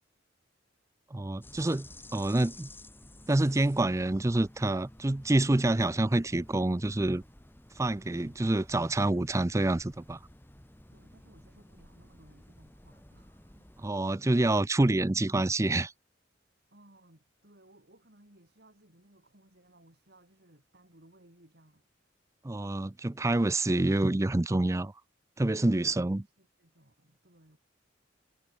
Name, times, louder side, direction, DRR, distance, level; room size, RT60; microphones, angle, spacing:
voice 1, 1.1-2.7 3.3-7.2 7.8-10.2 13.8-15.9 22.4-24.9 25.4-26.2, right 2 dB, 15° right, 0.5 m, -27 dB
sound 1, 1.4-13.9, left 1 dB, 10° left, 2.7 m, -53 dB
voice 2, 10.9-13.7 16.7-21.8 25.6-27.6, right 1 dB, 55° right, 4.9 m, -61 dB
head